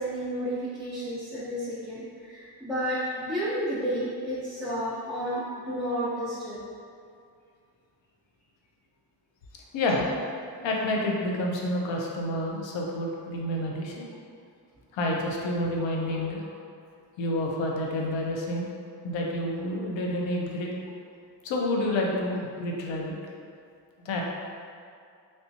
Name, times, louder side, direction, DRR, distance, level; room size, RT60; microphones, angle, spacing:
voice 1, 0.0-6.6, equal, ahead, -11 dB, 0.7 m, -31 dB
voice 2, 9.7-10.1 10.6-14.1 14.9-16.4 17.2-18.7 19.0-20.7 21.4-23.2 24.0-24.2, left 1 dB, 85° left, -1 dB, 0.6 m, -29 dB
3.2 x 2.9 x 2.7 m, 2.3 s
cardioid pair, 65°, 44 cm